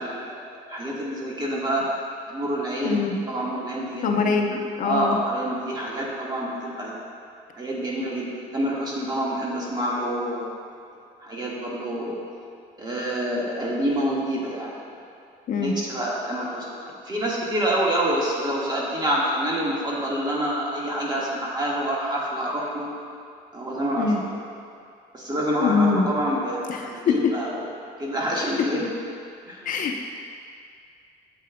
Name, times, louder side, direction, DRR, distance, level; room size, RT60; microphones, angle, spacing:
voice 1, 0.0-1.8 2.3-7.1 7.5-8.3 8.5-10.5 11.2-12.2 12.8-15.1 15.6-22.9 23.5-24.4 25.1-27.7 28.0-28.9 29.5-29.7, right 1 dB, 25° right, -5 dB, 1.6 m, -27 dB
voice 2, 2.8-3.2 4.0-5.2 15.5-15.7 24.0-24.2 25.6-26.1 26.7-26.8 27.1-27.2 29.7-30.0, left 5 dB, 50° left, 2 dB, 0.7 m, -23 dB
8.9 x 7.6 x 2.2 m, 2.3 s
cardioid pair, 110°, 17 cm